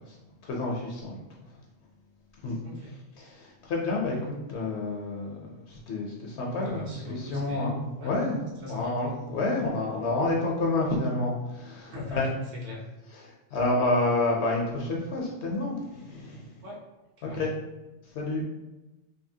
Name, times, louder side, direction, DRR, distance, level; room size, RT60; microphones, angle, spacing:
voice 1, 0.4-1.2 2.4-2.6 3.2-6.8 7.2-7.8 8.0-8.4 8.7-12.3 13.1-16.5 17.2-17.5 18.1-18.4, left 2 dB, 65° left, -1 dB, 0.8 m, -29 dB
voice 2, 2.6-3.0 6.5-8.1 8.6-8.9 11.9-12.8 16.6-16.8 17.2-17.5, left 1 dB, 60° right, -4 dB, 1.0 m, -38 dB
2.7 x 2.7 x 2.7 m, 1.1 s
omnidirectional pair, 1.3 m